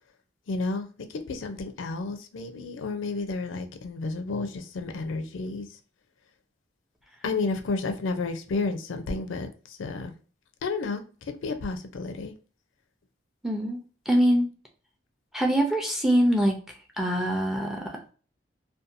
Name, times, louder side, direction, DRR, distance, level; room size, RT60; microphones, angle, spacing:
voice 1, 0.5-5.7 7.2-10.1 10.6-12.3, left 3 dB, 80° left, 0.4 m, -31 dB
voice 2, 13.4-13.8 14.1-14.5 15.3-16.6 17.0-18.1, equal, ahead, 0.4 m, -23 dB
2.7 x 2.2 x 2.5 m
head